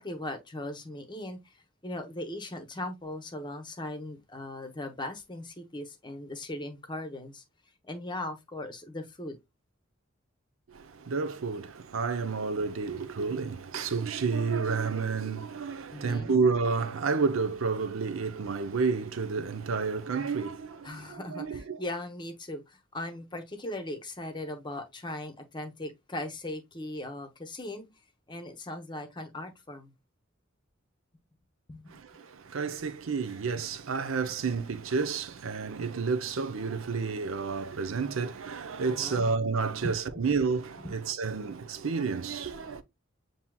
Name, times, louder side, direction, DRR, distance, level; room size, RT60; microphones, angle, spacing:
voice 1, 0.0-7.4 7.8-9.4 15.9-16.4 20.8-27.9 28.3-29.9 31.7-31.9 33.6-33.7 38.8-39.3 39.8-40.3 40.8-41.0, left 1 dB, 25° left, 0.8 m, -39 dB
voice 2, 10.7-21.8 31.9-42.8, right 5 dB, 85° right, 0.6 m, -30 dB
7.3 x 2.8 x 2.2 m
head